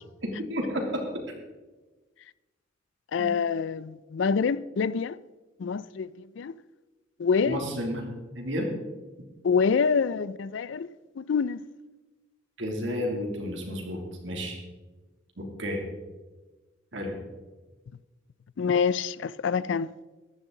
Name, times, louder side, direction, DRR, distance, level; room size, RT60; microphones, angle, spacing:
voice 1, 0.2-1.0 3.2-3.3 7.4-8.7 12.6-14.6 15.4-15.8 16.9-17.2, equal, 70° right, 2.8 m, -32 dB
voice 2, 3.1-5.2 5.6-6.1 6.4-6.5 7.2-7.6 9.4-10.9 11.2-11.6 18.6-19.9, left 5 dB, 70° left, 0.4 m, -26 dB
14.0 x 11.0 x 3.9 m
head